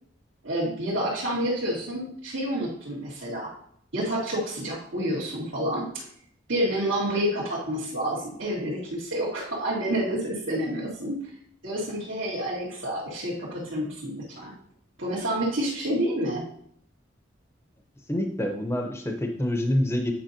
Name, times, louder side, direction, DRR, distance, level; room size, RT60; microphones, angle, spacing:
voice 1, 0.4-3.5 3.9-6.0 6.5-11.2 11.6-14.5 15.0-16.4, right 1 dB, 80° right, -10 dB, 2.1 m, -29 dB
voice 2, 18.1-20.1, left 1 dB, 15° left, 3 dB, 0.8 m, -26 dB
9.1 x 5.2 x 2.8 m, 0.65 s
head